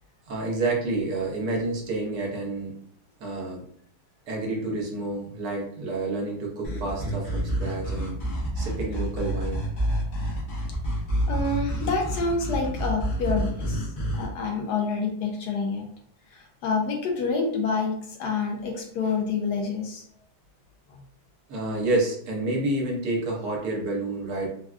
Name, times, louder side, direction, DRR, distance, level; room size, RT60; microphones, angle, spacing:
voice 1, 0.3-2.7 3.2-3.6 4.3-8.2 8.6-9.7 21.5-24.5, right 2 dB, 70° right, -1 dB, 1.1 m, -29 dB
sound 1, 6.6-14.3, equal, 60° left, 0.5 m, -28 dB
voice 2, 11.3-13.9 14.2-15.8 16.3-17.9 18.2-20.0, left 4 dB, 75° left, 2 dB, 1.2 m, -27 dB
3.5 x 2.2 x 2.3 m, 0.63 s
omnidirectional pair, 1.8 m